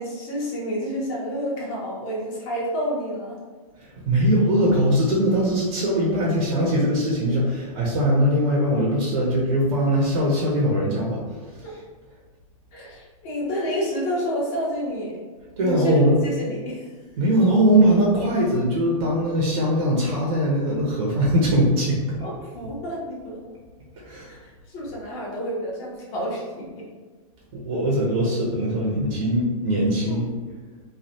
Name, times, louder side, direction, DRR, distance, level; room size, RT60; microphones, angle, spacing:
voice 1, 0.0-3.3 11.6-11.7 12.7-15.2 15.6-16.9 22.2-23.5 24.3-26.8 30.1-30.2, equal, 35° left, -5 dB, 1.1 m, -29 dB
voice 2, 3.8-11.6 15.6-16.2 17.2-22.2 24.0-24.3 27.5-30.3, equal, 60° right, -4 dB, 0.8 m, -21 dB
3.2 x 2.3 x 2.7 m, 1.4 s
supercardioid pair, 155°, 18 cm